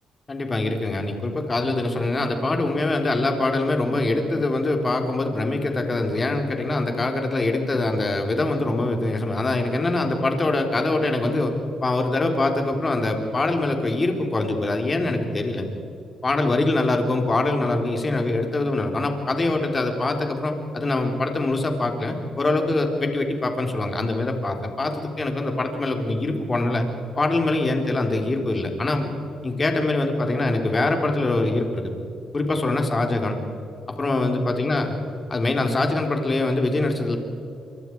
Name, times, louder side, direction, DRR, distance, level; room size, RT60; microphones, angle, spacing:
voice 1, 0.3-11.6 11.8-15.7 16.2-26.9 27.2-29.1 29.4-31.9 32.3-33.4 34.0-35.0 35.3-37.2, left 2 dB, 30° left, 3 dB, 3.8 m, -23 dB
26.5 x 24.0 x 4.8 m, 2.7 s
cardioid pair, 90°, 0 cm